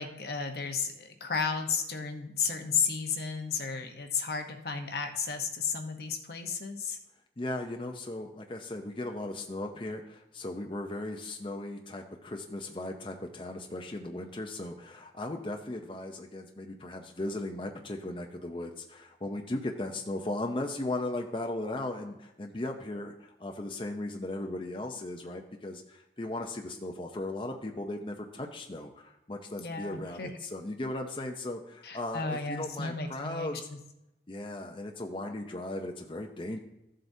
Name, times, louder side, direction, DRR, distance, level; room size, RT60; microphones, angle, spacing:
voice 1, 0.0-7.0 29.6-30.3 31.8-33.8, left 5 dB, 65° left, 5 dB, 0.9 m, -33 dB
voice 2, 7.4-33.7 34.3-36.6, left 1 dB, 30° left, 2 dB, 0.6 m, -37 dB
14.0 x 7.6 x 2.7 m, 0.88 s
head